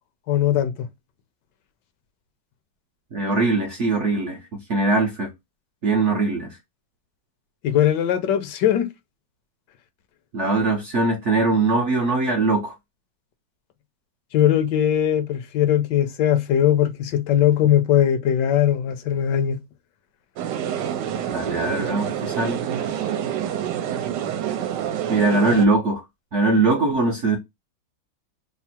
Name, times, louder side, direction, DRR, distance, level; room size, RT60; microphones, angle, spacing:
voice 1, 0.3-0.7 7.6-8.9 14.3-19.6, left 10 dB, 75° left, 1.2 m, -20 dB
voice 2, 3.1-4.4 4.7-5.3 5.8-6.6 10.3-12.7 21.3-22.6 25.1-26.0 26.3-27.4, right 3 dB, 60° right, 0.8 m, -21 dB
sound 1, 20.4-25.7, right 9 dB, 75° right, 1.2 m, -27 dB
3.4 x 2.0 x 4.2 m
omnidirectional pair, 2.0 m